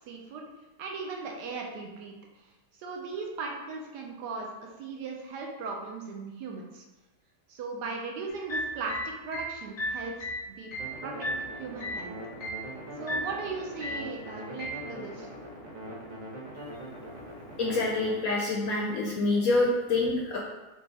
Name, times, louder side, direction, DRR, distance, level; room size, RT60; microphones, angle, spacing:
voice 1, 0.1-0.4 0.8-2.1 2.8-6.8 7.5-10.1 10.4-10.7 11.0-11.3 11.6-12.1 13.0-15.3, right 4 dB, 75° right, 0 dB, 1.2 m, -37 dB
sound 1, 8.3-12.1 12.4-12.7 13.1-13.4 13.8-14.1 14.6-14.9, equal, 45° left, 0.5 m, -34 dB
sound 2, 10.8-18.1, right 1 dB, 40° right, 0.6 m, -42 dB
voice 2, 17.6-20.4, left 2 dB, 70° left, -2 dB, 0.8 m, -26 dB
3.9 x 2.3 x 3.9 m, 1.1 s
omnidirectional pair, 1.9 m